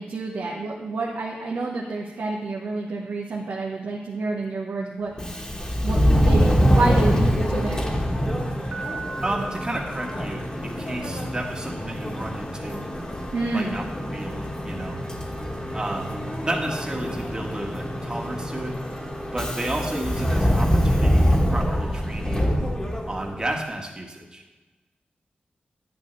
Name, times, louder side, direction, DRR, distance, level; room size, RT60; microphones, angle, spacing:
voice 1, 0.0-5.1 5.8-7.8 13.3-13.8, right 3 dB, 90° right, -3 dB, 1.2 m, -28 dB
Subway metro underground, 5.1-23.5, equal, 20° left, 1.4 m, -25 dB
sound 1, 6.4-21.1, left 1 dB, 40° left, 1.6 m, -36 dB
Piano, 8.7-10.8, right 5 dB, 55° right, 1.1 m, -38 dB
voice 2, 9.2-12.8 13.5-13.8 14.1-15.0 15.7-16.2 16.4-19.0 19.3-22.5 23.0-24.4, right 1 dB, 25° right, 0 dB, 1.5 m, -32 dB
11.0 x 9.3 x 3.3 m, 1.2 s
wide cardioid pair, 105°, 3 cm